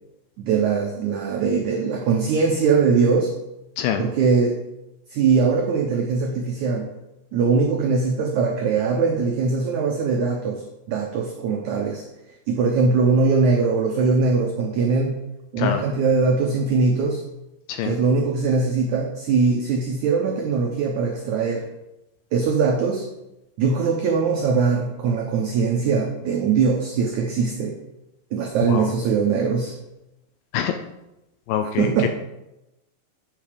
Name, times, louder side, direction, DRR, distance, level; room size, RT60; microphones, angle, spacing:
voice 1, 0.4-3.3 4.0-4.6 5.1-6.9 7.3-12.0 12.5-15.2 15.5-17.2 17.8-21.7 22.3-23.1 23.6-27.8 28.3-29.7 31.6-32.1, right 4 dB, 85° right, 2 dB, 1.6 m, -21 dB
voice 2, 31.5-32.1, left 9 dB, 80° left, 7 dB, 2.1 m, -24 dB
12.0 x 5.7 x 5.0 m, 0.93 s
omnidirectional pair, 4.6 m